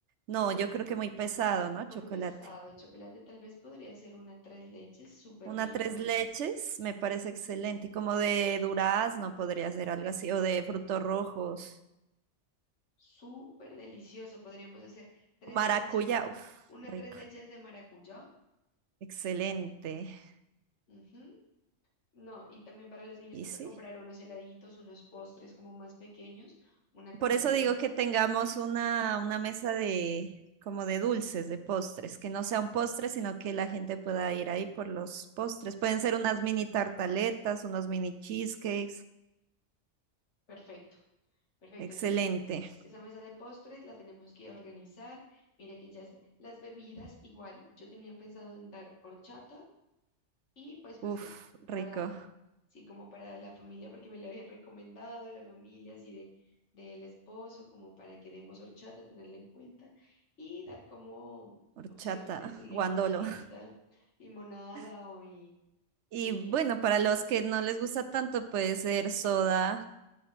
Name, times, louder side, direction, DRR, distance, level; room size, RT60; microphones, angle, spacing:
voice 1, 0.3-2.3 5.5-11.7 15.5-16.3 16.9-17.0 19.1-20.2 23.3-23.7 27.2-30.3 30.7-39.0 41.8-42.7 51.0-51.2 51.7-52.1 61.8-63.4 66.1-69.8, right 8 dB, 75° right, 10 dB, 1.0 m, -32 dB
voice 2, 1.9-6.1 13.0-16.1 16.7-18.3 20.9-21.4 22.1-27.7 40.5-41.0 41.6-42.3 42.8-46.1 46.4-49.7 50.6-51.3 51.7-52.2 52.7-61.6 61.9-65.5 66.2-66.6, left 1 dB, 75° left, -3 dB, 2.0 m, -49 dB
7.8 x 7.7 x 3.3 m, 0.91 s
omnidirectional pair, 1.2 m